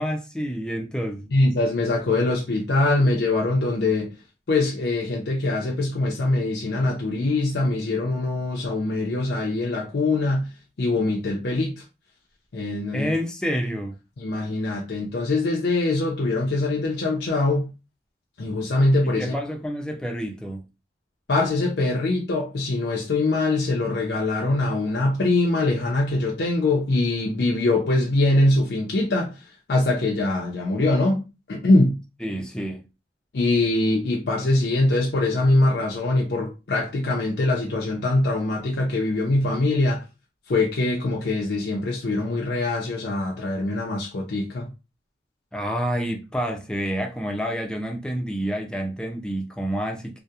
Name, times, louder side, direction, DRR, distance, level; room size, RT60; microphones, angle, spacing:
voice 1, 0.0-1.3 12.9-14.0 19.0-20.6 32.2-32.9 45.5-50.2, equal, 5° left, 0.4 m, -28 dB
voice 2, 1.3-4.1 4.5-10.5 10.8-11.8 12.5-13.1 14.2-17.7 18.4-19.3 21.3-29.4 29.7-31.2 31.5-32.0 33.3-40.0 40.5-44.7, left 2 dB, 70° left, 0.5 m, -23 dB
2.8 x 2.0 x 2.3 m
head